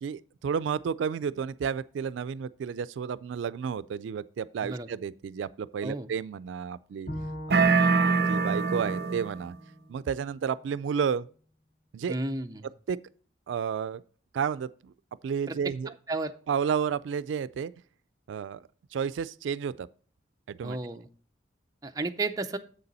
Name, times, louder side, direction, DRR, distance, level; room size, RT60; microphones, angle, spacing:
voice 1, 0.0-7.1 7.5-7.8 8.1-9.5 9.9-11.3 11.9-12.2 12.9-13.0 13.5-14.0 14.3-14.9 15.2-15.9 16.5-17.7 18.3-18.6 18.9-19.9 20.5-20.8, right 7 dB, 85° right, 0.3 m, -31 dB
voice 2, 4.6-4.9 5.8-6.1 12.1-12.7 15.5-15.6 15.9-16.3 20.6-21.1 21.8-22.6, right 2 dB, 20° right, 0.5 m, -33 dB
Bowed string instrument, 7.1-10.3, equal, 45° left, 1.8 m, -42 dB
sound 1, 7.5-9.4, right 4 dB, 55° right, 0.7 m, -24 dB
7.5 x 6.8 x 4.0 m
head